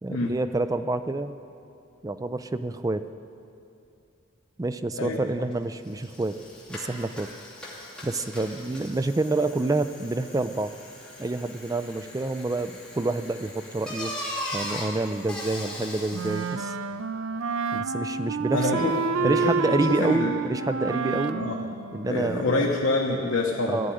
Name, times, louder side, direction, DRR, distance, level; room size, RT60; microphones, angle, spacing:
voice 1, 0.0-1.3 2.0-3.1 4.6-6.4 6.7-7.3 8.0-10.7 11.2-14.1 14.5-16.8 17.7-18.9 19.2-21.4 21.9-22.7 23.7-23.9, right 2 dB, 15° right, 11 dB, 0.3 m, -28 dB
Bicycle, 5.5-5.6 5.8-16.6, left 1 dB, 5° left, 2.6 m, -39 dB
Wind instrument woodwind instrument, 16.1-22.7, right 5 dB, 85° right, 0.5 m, -29 dB
voice 2, 18.5-18.9 19.2-20.4 21.3-21.6 22.0-23.8, left 2 dB, 75° left, -1 dB, 1.1 m, -27 dB
14.5 x 6.5 x 10.0 m, 2.6 s
head